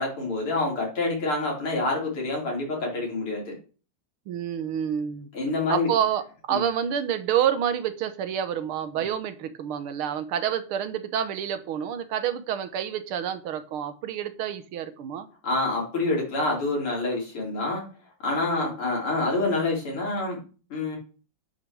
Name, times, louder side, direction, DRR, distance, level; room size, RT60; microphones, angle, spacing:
voice 1, 0.0-3.5 5.3-5.9 6.5-6.6 15.4-17.8 18.2-20.4 20.7-21.0, left 2 dB, 85° left, -2 dB, 5.5 m, -27 dB
voice 2, 4.3-5.3 5.7-15.3 18.4-18.8, right 9 dB, 85° right, 10 dB, 2.0 m, -28 dB
10.5 x 6.2 x 6.3 m, 0.37 s
omnidirectional pair, 2.3 m